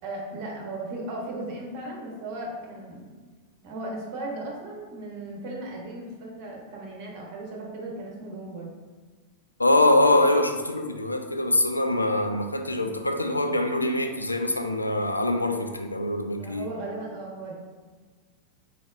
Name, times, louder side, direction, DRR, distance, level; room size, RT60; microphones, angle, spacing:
voice 1, 0.0-3.1 3.6-8.7 16.4-17.5, right 2 dB, 45° right, -2 dB, 1.1 m, -36 dB
voice 2, 9.6-16.7, left 1 dB, 85° left, 5 dB, 0.4 m, -23 dB
4.2 x 4.1 x 2.4 m, 1.4 s
figure-of-eight pair, 90°, 0 cm